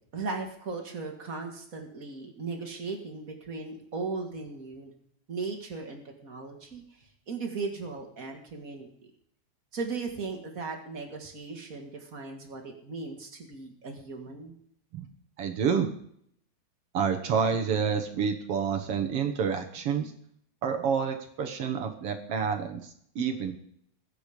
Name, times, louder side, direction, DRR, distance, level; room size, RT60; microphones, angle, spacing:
voice 1, 0.0-4.9 5.3-8.9 9.7-14.5, right 4 dB, 30° right, 2 dB, 2.5 m, -37 dB
voice 2, 15.4-15.9 16.9-20.1 20.6-23.5, right 6 dB, 60° right, 5 dB, 2.0 m, -28 dB
21.0 x 8.3 x 5.2 m, 0.67 s
omnidirectional pair, 3.4 m